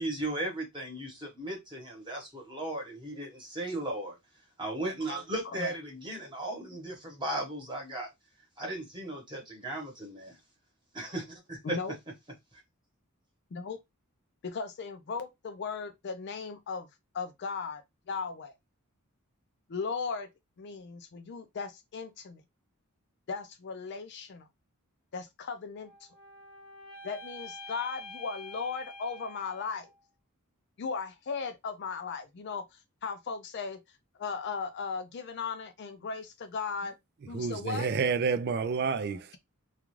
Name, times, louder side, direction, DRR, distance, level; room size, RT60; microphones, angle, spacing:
voice 1, 0.0-4.2 4.6-8.1 8.6-10.4 10.9-11.8, right 1 dB, 20° right, 1.0 m, -36 dB
voice 2, 11.6-11.9 13.5-13.8 14.4-16.9 17.1-17.8 18.1-18.5 19.7-20.3 20.6-22.4 23.3-24.5 25.1-26.1 27.0-29.9 30.8-33.8 34.1-36.9 37.3-37.9, left 5 dB, 50° left, 0.4 m, -37 dB
sound 1, 25.7-30.0, left 2 dB, 20° left, 0.9 m, -47 dB
voice 3, 37.3-39.4, right 5 dB, 45° right, 0.3 m, -29 dB
2.4 x 2.3 x 3.1 m
head